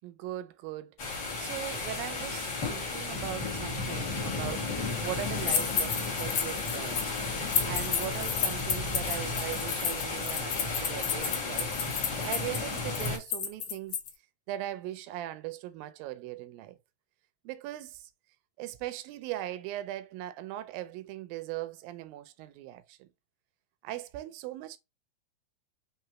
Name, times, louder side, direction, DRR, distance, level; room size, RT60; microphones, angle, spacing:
voice 1, 0.0-1.1 1.4-4.8 5.0-7.1 7.6-11.8 12.2-14.0 14.5-16.8 17.4-18.1 18.6-23.1 23.8-24.8, right 14 dB, 90° right, 2.4 m, -39 dB
sound 1, 1.0-13.2, left 3 dB, 45° left, 1.5 m, -33 dB
sound 2, 5.5-7.1 7.5-14.1, left 7 dB, 70° left, 1.4 m, -32 dB
5.8 x 3.2 x 2.8 m
omnidirectional pair, 4.0 m